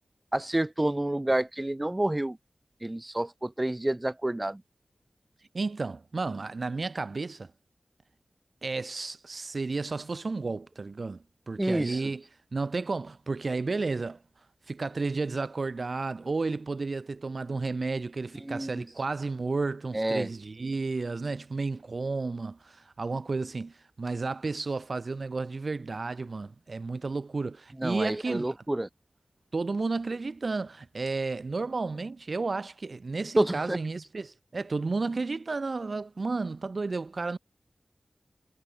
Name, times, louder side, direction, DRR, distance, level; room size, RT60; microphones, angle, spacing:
voice 1, 0.3-2.4 2.8-4.6 11.6-12.0 18.5-18.8 19.9-20.3 27.8-28.9 33.4-33.8, right 1 dB, 25° right, 0.6 m, -28 dB
voice 2, 5.5-7.5 8.6-12.2 12.5-14.2 14.7-28.5 29.5-37.4, right 3 dB, 60° right, 2.7 m, -32 dB
cardioid pair, 50°, 0 cm